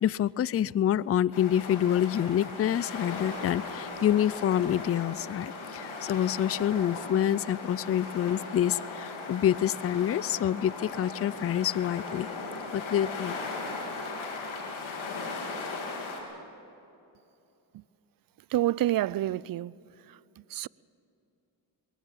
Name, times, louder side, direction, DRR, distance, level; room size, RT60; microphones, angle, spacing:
voice 1, 0.0-12.3 12.7-13.4, left 10 dB, 30° left, 0.4 m, -27 dB
sound 1, 1.3-16.2, left 3 dB, 75° left, 3.4 m, -38 dB
voice 2, 18.5-19.7 20.5-20.7, right 14 dB, 45° right, 0.4 m, -27 dB
21.0 x 16.5 x 7.4 m
supercardioid pair, 50°, 49 cm